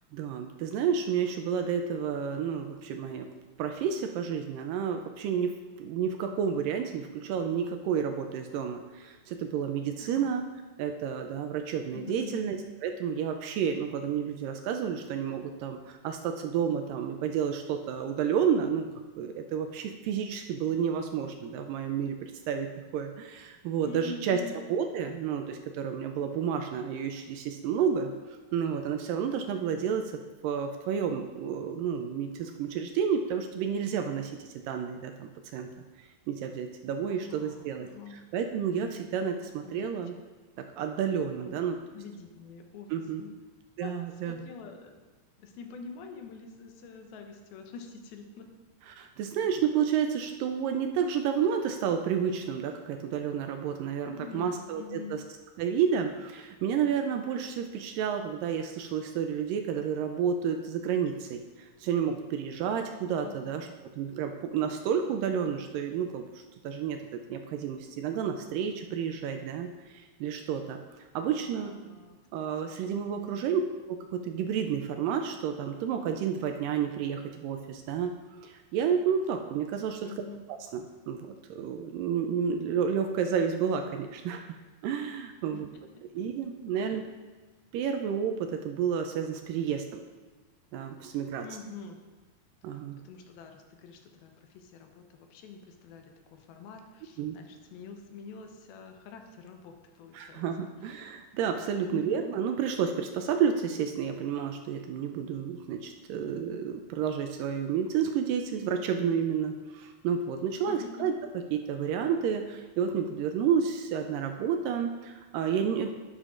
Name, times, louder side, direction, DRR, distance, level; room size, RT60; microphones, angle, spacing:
voice 1, 0.1-3.3 3.6-10.4 10.8-12.6 12.8-18.9 19.2-22.7 22.9-24.4 24.7-30.1 30.4-35.7 36.0-40.1 40.8-41.8 42.9-43.2 43.8-44.4 48.9-55.2 55.6-63.7 64.0-70.8 71.2-71.7 72.3-73.6 73.9-78.1 78.4-80.1 80.7-84.5 84.8-85.7 86.1-87.0 87.7-90.0 90.7-91.4 92.6-93.0 97.2-97.4 100.1-111.1 111.5-115.9, right 7 dB, 80° right, 5 dB, 2.1 m, -30 dB
voice 2, 10.0-10.3 11.9-12.5 23.8-24.6 29.7-29.9 37.1-38.2 39.6-40.2 41.4-42.9 43.2-43.4 43.8-45.0 45.4-48.5 54.1-55.2 63.2-63.7 71.0-72.2 72.6-72.8 73.2-73.5 80.1-80.4 85.5-85.6 86.1-86.2 86.7-87.0 91.4-92.0 92.7-100.4 100.8-101.1 101.9-102.3 110.7-111.2, left 5 dB, 85° left, 4 dB, 2.7 m, -46 dB
11.0 x 9.9 x 2.5 m, 1.3 s
omnidirectional pair, 4.3 m